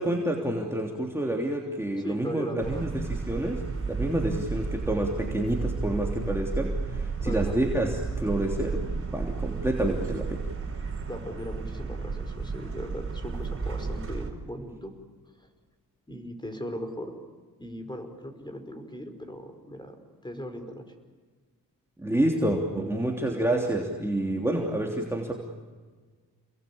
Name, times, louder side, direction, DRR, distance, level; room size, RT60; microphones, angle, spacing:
voice 1, 0.0-10.4 22.0-25.3, right 1 dB, 5° right, 0 dB, 3.2 m, -28 dB
voice 2, 2.0-2.9 7.2-7.8 11.1-14.9 15.4-15.5 16.1-17.1 17.6-20.0 20.2-20.8, equal, 15° left, 6 dB, 5.2 m, -38 dB
sound 1, 2.6-14.3, right 4 dB, 40° right, 4.6 m, -32 dB
29.0 x 21.5 x 8.7 m, 1.4 s
cardioid pair, 70°, 35 cm